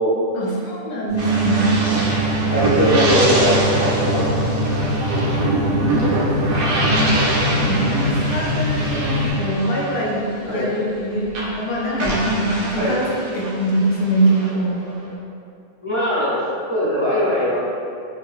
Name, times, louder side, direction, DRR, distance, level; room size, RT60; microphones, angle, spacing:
voice 1, 0.3-1.8 6.8-7.2 7.6-14.8, right 1 dB, 65° left, -3 dB, 0.8 m, -23 dB
sound 1, 1.1-9.3, equal, 85° right, 1.0 m, -23 dB
sound 2, 1.2-11.0 11.3-15.1, right 2 dB, 60° right, 0.7 m, -24 dB
voice 2, 2.5-4.4 10.5-10.7 12.7-13.0 15.8-16.4 16.7-17.6, equal, 35° left, -10 dB, 0.8 m, -20 dB
3.5 x 2.8 x 2.3 m, 2.4 s
omnidirectional pair, 1.1 m